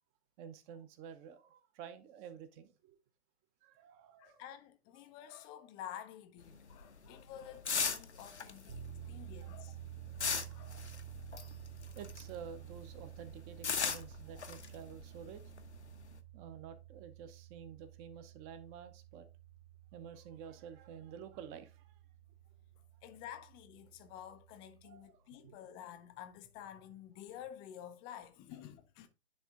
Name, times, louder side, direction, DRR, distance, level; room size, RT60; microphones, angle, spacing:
voice 1, 0.4-3.0 3.6-4.4 7.0-7.2 8.7-8.8 9.0-9.1 9.4-9.5 10.5-10.9 11.9-15.5 16.3-19.3 19.9-22.0 24.8-25.8 28.5-28.6, right 8 dB, 20° right, 0.8 m, -51 dB
voice 2, 4.2-9.8 10.5-10.7 23.0-29.1, left 10 dB, 15° left, 0.5 m, -50 dB
sound 1, 6.4-12.5 12.8-16.2, left 5 dB, 90° left, 1.0 m, -39 dB
sound 2, 8.7-25.0, right 11 dB, 45° right, 1.7 m, -52 dB
10.0 x 3.5 x 3.7 m
figure-of-eight pair, 130°, 33 cm